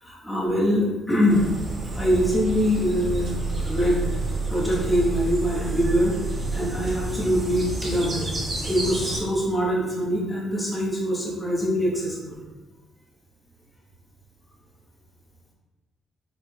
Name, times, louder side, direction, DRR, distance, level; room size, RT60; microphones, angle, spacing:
voice 1, 0.0-1.5 1.9-4.0 4.5-6.2 6.5-8.3 8.6-12.4, equal, 10° left, -5 dB, 1.1 m, -24 dB
sound 1, 1.3-9.2, right 2 dB, 45° right, 1.2 m, -29 dB
4.7 x 3.6 x 2.2 m, 1.2 s
cardioid pair, 90°, 0 cm